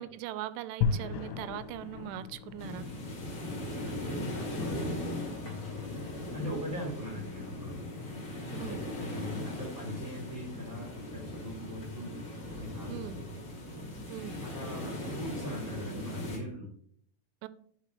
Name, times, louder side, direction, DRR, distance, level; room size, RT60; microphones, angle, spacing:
voice 1, 0.0-2.9 8.5-8.8 12.9-13.2 14.1-14.4 17.4-17.5, right 13 dB, 90° right, 3.0 m, -40 dB
sound 1, 0.8-11.1, left 6 dB, 80° left, 2.8 m, -40 dB
sound 2, 2.6-16.4, left 1 dB, 45° left, 1.5 m, -39 dB
voice 2, 3.9-6.0 6.3-7.8 8.6-12.2 12.5-13.1 14.4-16.7, equal, 25° right, 2.5 m, -41 dB
9.8 x 5.9 x 2.9 m
omnidirectional pair, 5.4 m